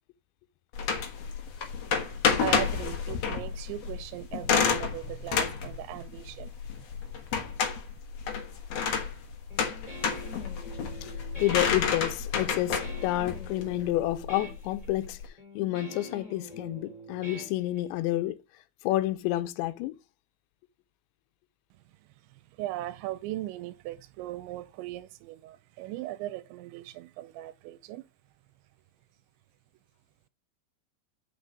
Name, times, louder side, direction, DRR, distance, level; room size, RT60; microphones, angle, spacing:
sound 1, 0.7-15.2, left 6 dB, 65° left, 1.5 m, -30 dB
voice 1, 2.4-6.9 7.3-7.5 22.6-28.1, right 15 dB, 90° right, 3.0 m, -38 dB
Guitar, 9.5-18.1, equal, 10° left, 2.8 m, -45 dB
voice 2, 11.4-15.2 15.6-18.4 18.8-20.0, left 16 dB, 85° left, 3.0 m, -29 dB
8.4 x 6.0 x 5.0 m
omnidirectional pair, 5.2 m